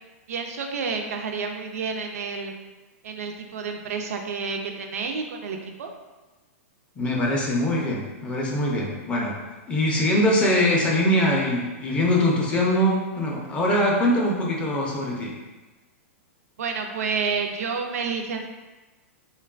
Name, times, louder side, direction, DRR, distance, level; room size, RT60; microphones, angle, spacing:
voice 1, 0.3-2.5 3.0-5.9 16.6-18.5, right 5 dB, 80° right, 3 dB, 0.4 m, -29 dB
voice 2, 7.0-9.4 9.7-15.3, left 1 dB, 15° left, -3 dB, 0.4 m, -22 dB
3.0 x 2.2 x 2.3 m, 1.2 s
hypercardioid pair, 145°, 8 cm